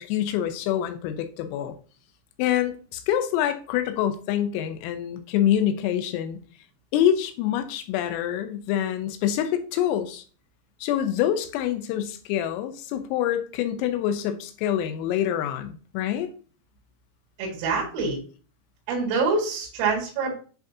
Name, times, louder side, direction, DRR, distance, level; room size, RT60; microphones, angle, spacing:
voice 1, 0.0-1.8 2.4-6.4 6.9-10.2 10.8-16.3, left 10 dB, 85° left, 8 dB, 3.4 m, -26 dB
voice 2, 17.4-18.2 18.9-20.3, right 4 dB, 80° right, -3 dB, 4.4 m, -25 dB
10.5 x 4.0 x 2.7 m, 0.39 s
omnidirectional pair, 6.0 m